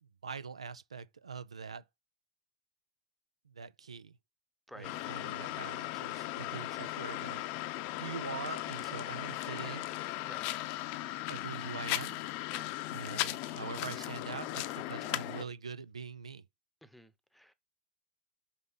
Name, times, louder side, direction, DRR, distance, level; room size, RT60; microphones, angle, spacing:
voice 1, 0.0-1.8 3.5-4.2 4.7-7.4 8.0-9.9 11.3-12.2 12.9-16.4, right 6 dB, 80° right, 0.4 m, -43 dB
sound 1, 4.8-15.4, left 16 dB, 50° left, 0.7 m, -37 dB
voice 2, 16.8-17.5, equal, ahead, 0.9 m, -52 dB
5.9 x 5.6 x 3.8 m
figure-of-eight pair, 85°, 3 cm